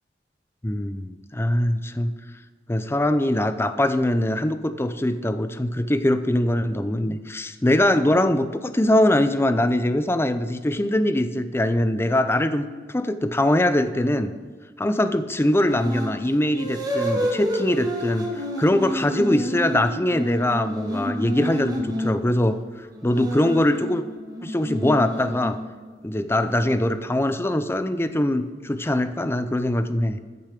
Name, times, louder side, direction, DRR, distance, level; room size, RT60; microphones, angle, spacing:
voice 1, 0.6-2.1 2.7-14.3 14.8-22.6 23.0-24.0 24.4-25.6 26.0-30.2, left 1 dB, 15° left, 11 dB, 0.6 m, -22 dB
sound 1, 15.7-16.2 16.5-22.2 22.9-25.9, equal, 25° right, 1.8 m, -29 dB
14.0 x 6.9 x 5.0 m, 1.5 s
head